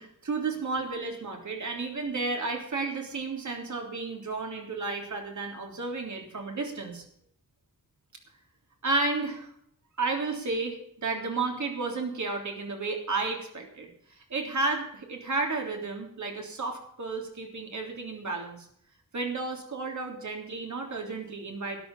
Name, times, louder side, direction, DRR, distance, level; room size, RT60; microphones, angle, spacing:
voice 1, 0.0-7.0 8.8-9.5 10.0-18.7 19.1-21.8, right 3 dB, 60° right, 2 dB, 3.5 m, -32 dB
13.0 x 11.0 x 5.5 m, 0.68 s
wide cardioid pair, 160°, 34 cm